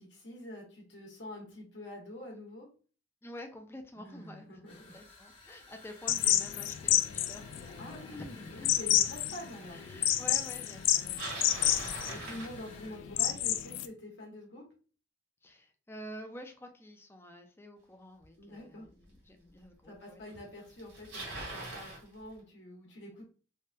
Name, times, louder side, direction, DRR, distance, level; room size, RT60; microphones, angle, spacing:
voice 1, 0.0-2.7 4.0-4.9 7.8-9.8 12.1-14.6 18.4-18.9 19.8-23.2, left 1 dB, 65° left, -2 dB, 1.2 m, -46 dB
voice 2, 3.2-4.5 4.9-8.7 9.7-12.4 15.4-20.4 21.3-21.4, equal, 15° left, 4 dB, 0.4 m, -49 dB
sound 1, 4.6-13.0, left 3 dB, 30° left, 0.9 m, -55 dB
sound 2, 6.1-13.9, left 12 dB, 90° left, 0.3 m, -29 dB
Bicycle, 10.8-13.2 18.2-18.3 19.1-19.2 20.3-20.4 20.6-22.0, right 2 dB, 70° right, 1.6 m, -42 dB
3.3 x 2.2 x 2.6 m, 0.38 s
head